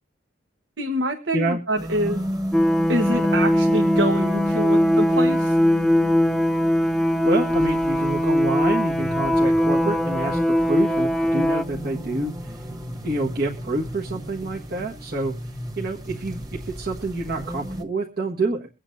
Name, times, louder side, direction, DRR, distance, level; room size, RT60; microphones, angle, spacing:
voice 1, 0.8-2.2 2.9-5.6, right 1 dB, 70° right, 5 dB, 1.3 m, -26 dB
sound 1, 1.8-17.8, equal, 20° right, 1.7 m, -32 dB
sound 2, 2.5-11.6, equal, 5° left, 0.5 m, -21 dB
voice 2, 7.2-12.7 13.0-15.3 15.8-18.7, right 2 dB, 55° right, -2 dB, 1.5 m, -27 dB
23.5 x 8.7 x 2.6 m, 0.28 s
head